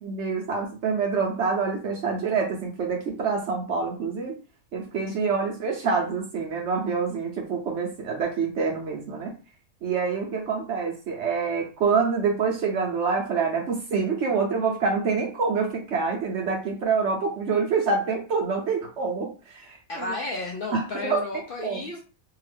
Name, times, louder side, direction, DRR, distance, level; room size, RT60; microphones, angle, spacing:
voice 1, 0.0-4.4 4.7-9.3 9.8-20.1 20.7-21.2 21.6-21.8, right 5 dB, 65° right, 1 dB, 0.8 m, -26 dB
voice 2, 19.9-22.0, left 3 dB, 65° left, 0 dB, 0.5 m, -33 dB
2.7 x 2.3 x 3.3 m, 0.34 s
omnidirectional pair, 1.4 m